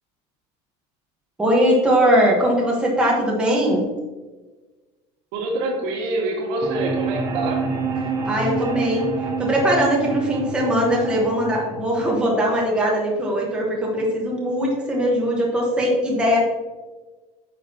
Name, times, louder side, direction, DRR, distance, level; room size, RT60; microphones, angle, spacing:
voice 1, 1.4-3.8 8.2-9.1 9.4-16.4, equal, 5° right, -3 dB, 1.3 m, -20 dB
voice 2, 5.3-7.7, right 2 dB, 75° right, 0 dB, 2.1 m, -26 dB
sound 1, 6.6-12.6, right 4 dB, 20° right, 0.9 m, -27 dB
9.2 x 6.6 x 2.9 m, 1.2 s
cardioid pair, 180°, 14 cm